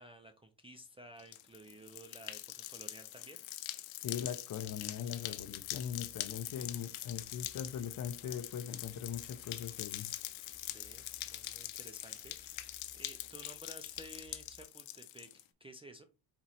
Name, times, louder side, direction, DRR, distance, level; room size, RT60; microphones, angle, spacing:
voice 1, 0.0-3.4 10.7-16.0, equal, 15° right, 0.4 m, -54 dB
sound 1, 1.2-15.4, left 15 dB, 85° left, 0.7 m, -44 dB
voice 2, 4.0-10.1, left 8 dB, 45° left, 0.7 m, -40 dB
sound 2, 4.6-14.7, right 1 dB, 30° right, 2.9 m, -63 dB
4.3 x 3.0 x 4.0 m
cardioid pair, 125°, 46 cm